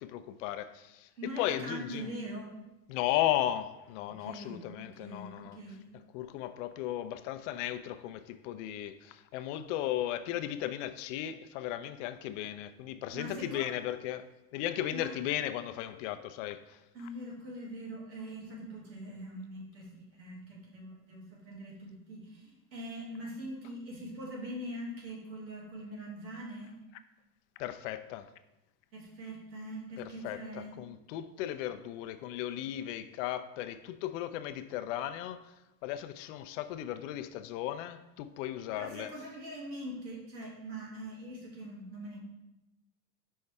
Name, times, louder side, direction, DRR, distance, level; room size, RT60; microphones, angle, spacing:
voice 1, 0.0-2.1 2.9-5.6 6.1-14.3 14.5-17.1 27.6-28.3 30.0-35.5 35.8-39.1, left 12 dB, 50° left, 0.5 m, -36 dB
voice 2, 1.2-2.5 4.2-5.9 13.1-13.7 14.9-15.1 16.9-26.7 28.9-30.7 38.8-42.2, right 1 dB, 90° right, 2.0 m, -43 dB
5.4 x 5.4 x 3.4 m
hypercardioid pair, 105°, 50 cm